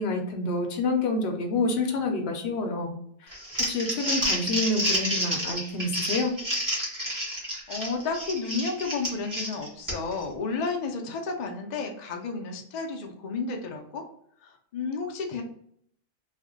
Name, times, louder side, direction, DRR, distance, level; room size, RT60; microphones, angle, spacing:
voice 1, 0.0-2.9 3.2-6.4, left 2 dB, 60° left, 3 dB, 0.7 m, -28 dB
Crumpling crinkling, 3.3-10.2, equal, 20° right, 0.7 m, -29 dB
voice 2, 7.7-14.1 14.4-15.4, left 4 dB, 80° left, 3 dB, 0.3 m, -32 dB
2.5 x 2.1 x 3.6 m, 0.68 s
omnidirectional pair, 1.3 m